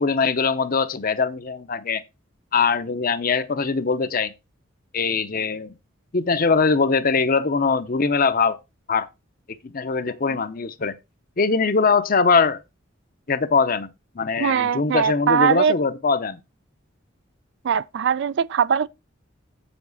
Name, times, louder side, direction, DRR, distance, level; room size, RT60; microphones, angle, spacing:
voice 1, 0.0-2.0 2.5-4.3 4.9-5.7 6.1-8.6 8.9-9.1 9.5-10.9 11.4-12.6 13.3-13.9 14.1-16.4, left 4 dB, 45° left, 0.7 m, -22 dB
voice 2, 14.4-15.8 17.6-18.9, right 7 dB, 60° right, 0.4 m, -21 dB
7.9 x 7.1 x 4.0 m
head